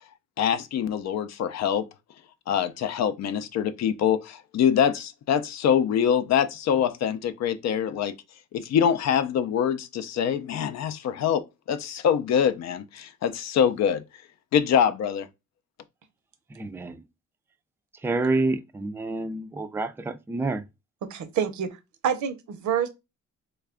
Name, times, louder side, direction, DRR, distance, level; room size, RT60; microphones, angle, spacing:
voice 1, 0.4-1.8 2.5-8.2 8.5-11.4 11.7-14.0 14.5-15.3, left 8 dB, 60° left, 0.5 m, -24 dB
voice 2, 16.6-17.0 18.0-20.6, right 3 dB, 10° right, 0.3 m, -28 dB
voice 3, 21.0-21.7 22.0-22.9, right 8 dB, 70° right, 0.7 m, -27 dB
3.2 x 2.3 x 3.5 m
cardioid pair, 90°, 30 cm